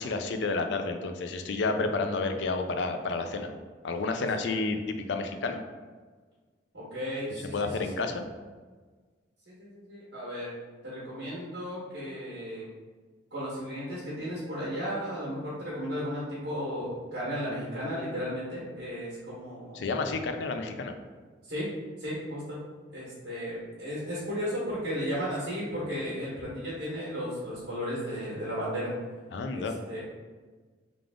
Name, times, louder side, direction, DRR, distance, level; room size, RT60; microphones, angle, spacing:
voice 1, 0.0-3.5 3.8-5.6 7.5-8.3 19.7-20.9 29.3-29.7, left 3 dB, 65° left, 6 dB, 0.4 m, -30 dB
voice 2, 4.0-4.6 6.7-8.1 9.5-10.5 10.8-12.7 13.3-19.8 21.5-21.7 22.0-22.6 22.9-28.9 29.5-30.0, equal, 60° right, -9 dB, 1.2 m, -35 dB
3.4 x 2.4 x 3.5 m, 1.4 s
head